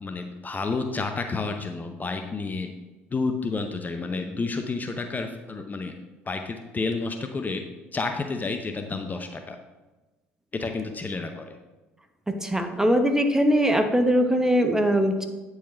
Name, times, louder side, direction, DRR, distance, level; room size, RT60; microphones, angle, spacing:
voice 1, 0.0-2.7 3.1-5.9 6.3-7.6 7.9-9.6 10.5-11.5, left 3 dB, 25° left, 6 dB, 0.7 m, -30 dB
voice 2, 12.3-15.2, equal, 5° right, 6 dB, 0.9 m, -21 dB
9.2 x 4.7 x 4.3 m, 1.1 s
hypercardioid pair, 65°, 7 cm